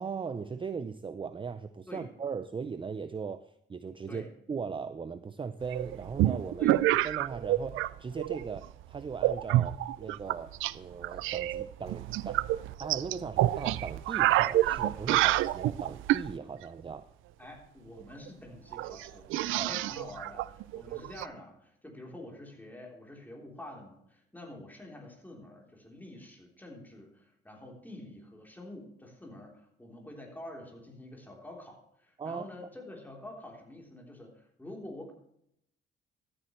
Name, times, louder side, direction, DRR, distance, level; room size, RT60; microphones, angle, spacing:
voice 1, 0.0-6.7 7.0-12.4 12.8-17.0 19.5-19.7 32.2-32.5, right 5 dB, 25° right, 11 dB, 0.5 m, -38 dB
sound 1, 5.7-7.9 8.2-8.6 9.2-10.7 11.0-16.3 18.0-18.1 18.3-18.4 18.7-21.3, right 15 dB, 85° right, 0.4 m, -28 dB
voice 2, 17.4-35.1, left 1 dB, 10° left, -1 dB, 3.5 m, -47 dB
14.0 x 8.9 x 3.1 m, 0.75 s
cardioid pair, 90°, 20 cm